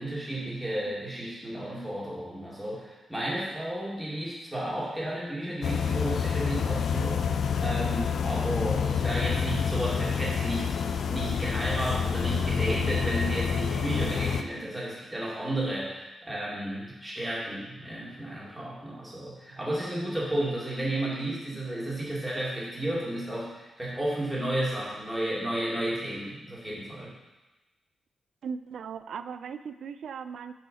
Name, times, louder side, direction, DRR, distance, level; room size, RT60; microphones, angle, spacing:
voice 1, 0.0-7.3 7.6-10.8 11.1-27.1, right 1 dB, 10° right, -6 dB, 2.5 m, -32 dB
sound 1, 5.6-14.4, left 6 dB, 75° left, 0.5 m, -28 dB
voice 2, 28.4-30.5, right 6 dB, 80° right, 12 dB, 0.4 m, -38 dB
6.5 x 5.5 x 5.6 m, 1.1 s
cardioid pair, 105°, 0 cm